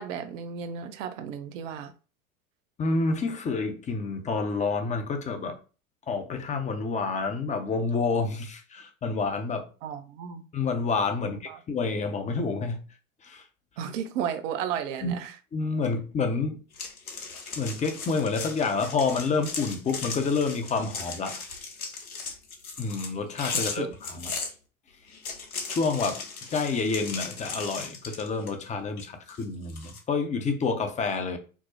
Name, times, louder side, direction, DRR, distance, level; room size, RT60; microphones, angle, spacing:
voice 1, 0.0-1.9 9.8-10.4 11.5-11.6 13.8-15.3 23.8-23.9, right 8 dB, 60° right, 0.6 m, -33 dB
voice 2, 2.8-5.6 6.1-9.7 10.5-12.8 13.2-13.4 15.0-15.1 15.5-16.6 17.6-21.4 22.8-24.3 25.7-26.2 26.5-31.4, left 4 dB, 20° left, 0.5 m, -28 dB
sound 1, 16.7-24.5 25.1-28.6 29.0-30.0, left 4 dB, 90° left, 0.8 m, -37 dB
4.5 x 2.0 x 2.7 m
figure-of-eight pair, 80°, 42 cm